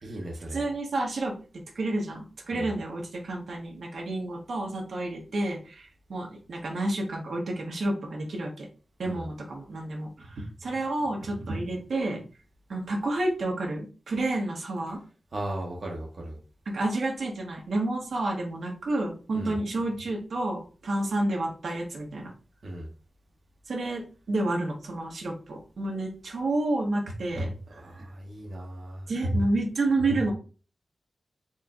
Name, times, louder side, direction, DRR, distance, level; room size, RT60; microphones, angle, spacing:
voice 1, 0.0-0.6 2.5-2.7 9.0-9.3 15.3-16.4 19.3-19.6 22.6-22.9 27.7-29.1, right 1 dB, 55° right, -2 dB, 0.9 m, -37 dB
voice 2, 0.5-1.3 1.7-8.7 9.0-12.2 12.7-15.0 16.7-22.3 23.7-28.1 29.1-30.3, right 2 dB, 80° right, 0 dB, 1.1 m, -30 dB
4.3 x 3.2 x 2.5 m, 0.36 s
wide cardioid pair, 105°, 0 cm